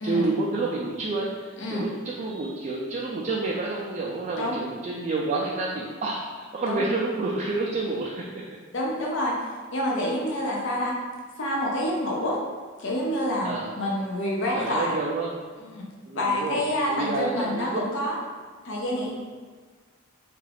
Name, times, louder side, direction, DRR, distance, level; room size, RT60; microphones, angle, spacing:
voice 1, 0.0-8.6 10.5-10.6 13.4-13.7 14.5-15.3 16.0-16.6 16.9-17.8, right 3 dB, 35° right, -3 dB, 0.3 m, -29 dB
voice 2, 8.7-9.4 9.7-11.0 11.4-12.4 12.8-14.9 15.6-15.8 16.1-18.2 18.6-19.1, left 1 dB, 60° left, -3 dB, 0.6 m, -27 dB
3.5 x 2.3 x 3.3 m, 1.5 s
head